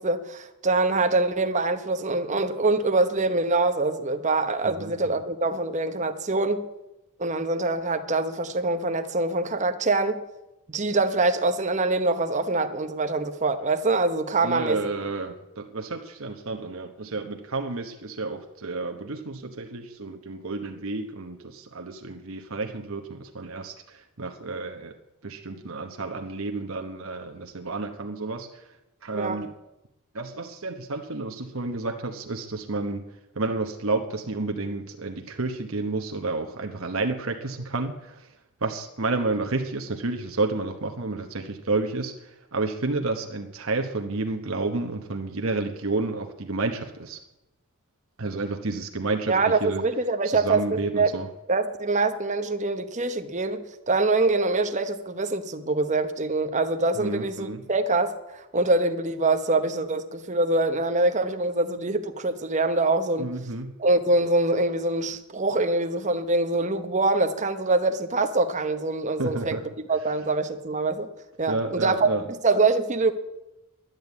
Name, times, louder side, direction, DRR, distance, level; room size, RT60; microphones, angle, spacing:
voice 1, 0.0-6.7 7.2-10.2 10.7-14.8 29.1-29.4 49.3-51.1 51.5-63.3 63.8-69.6 69.9-71.1 71.4-72.1 72.4-73.1, right 3 dB, 35° right, 1.0 m, -24 dB
voice 2, 14.4-24.9 25.2-28.7 29.0-29.5 30.1-33.0 33.3-38.3 38.6-47.2 48.2-49.8 50.2-51.3 57.0-57.7 63.2-63.7 69.2-69.6 71.5-72.2, right 3 dB, 65° right, 1.1 m, -30 dB
11.5 x 11.0 x 8.3 m
head